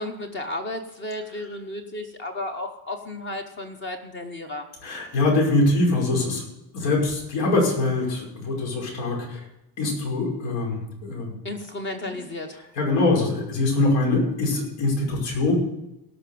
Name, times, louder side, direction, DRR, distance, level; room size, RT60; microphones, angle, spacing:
voice 1, 0.0-4.6 11.4-12.6, left 1 dB, 25° left, 5 dB, 0.9 m, -33 dB
voice 2, 4.8-6.4 6.7-9.5 9.8-11.4 12.0-12.2 12.6-15.5, left 2 dB, 75° left, -2 dB, 5.4 m, -23 dB
17.5 x 6.0 x 6.9 m, 0.90 s
cardioid pair, 175°, 46 cm